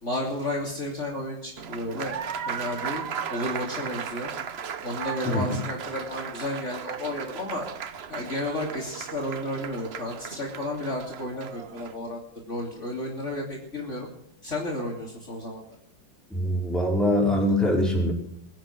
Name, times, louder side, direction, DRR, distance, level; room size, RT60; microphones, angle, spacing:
voice 1, 0.0-2.2 2.4-3.0 3.3-4.3 4.8-7.7 8.1-12.2 12.5-14.1 14.4-15.6, left 1 dB, 40° left, -1 dB, 3.4 m, -32 dB
Applause, 1.6-12.0, right 7 dB, 50° right, 0.8 m, -36 dB
voice 2, 5.3-5.6 16.3-18.1, left 1 dB, ahead, -1 dB, 4.5 m, -23 dB
22.5 x 9.3 x 6.0 m, 0.72 s
omnidirectional pair, 2.0 m